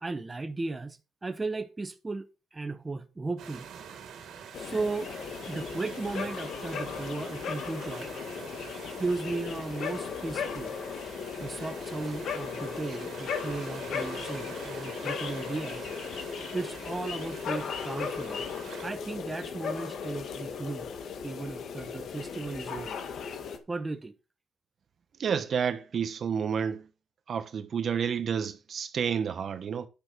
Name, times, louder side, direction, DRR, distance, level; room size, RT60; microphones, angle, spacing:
voice 1, 0.0-3.7 4.6-5.1 5.5-8.1 9.0-10.8 11.4-15.9 16.5-18.5 18.8-20.9 21.2-23.0 23.7-24.1, right 3 dB, 20° right, 0.9 m, -35 dB
sound 1, 3.4-18.9, right 7 dB, 75° right, 2.4 m, -46 dB
sound 2, 4.5-23.6, left 6 dB, 65° left, 1.6 m, -37 dB
voice 2, 25.2-26.8 27.3-29.9, right 7 dB, 55° right, 1.1 m, -30 dB
10.5 x 6.2 x 5.2 m
cardioid pair, 90°, 0 cm